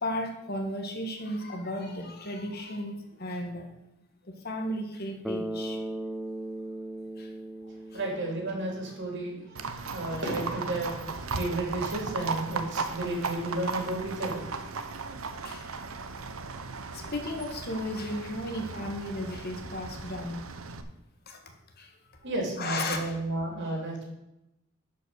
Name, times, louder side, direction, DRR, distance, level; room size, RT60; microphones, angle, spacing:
voice 1, 0.0-3.7 4.4-5.8 7.2-7.3 7.9-8.0 15.4-15.6 16.9-20.4 21.3-21.4 21.8-21.9 22.6-23.2, left 1 dB, 50° left, 4 dB, 1.6 m, -34 dB
Bass guitar, 5.2-9.2, right 1 dB, ahead, 0.4 m, -37 dB
voice 2, 7.9-14.5 22.2-24.1, right 2 dB, 60° right, 0 dB, 3.2 m, -32 dB
Livestock farm animals working animals, 9.5-20.8, right 4 dB, 85° right, 0.9 m, -36 dB
12.0 x 5.5 x 6.4 m, 0.89 s
head